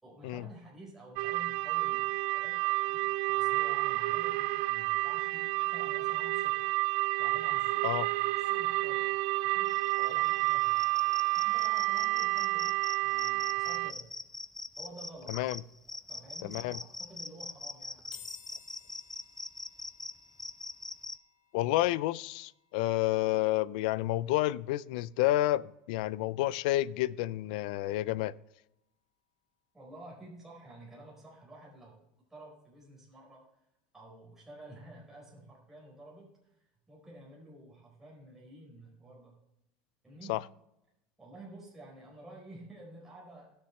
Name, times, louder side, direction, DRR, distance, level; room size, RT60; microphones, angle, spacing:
voice 1, 0.0-3.0 3.3-6.7 7.2-9.1 9.4-10.9 11.3-14.1 14.8-15.4 16.1-18.2 29.7-32.0 32.3-33.5 33.9-39.4 40.0-40.4 41.2-43.5, right 2 dB, 10° right, 4.5 m, -51 dB
sound 1, 1.2-13.9, right 20 dB, 65° right, 0.4 m, -30 dB
sound 2, 9.7-21.2, left 2 dB, 5° left, 0.5 m, -43 dB
voice 2, 15.3-15.6 16.4-16.8 21.5-28.3 40.3-40.4, left 16 dB, 70° left, 0.4 m, -30 dB
sound 3, 18.1-31.4, left 9 dB, 50° left, 2.8 m, -61 dB
19.0 x 6.7 x 3.2 m
supercardioid pair, 140°, 5 cm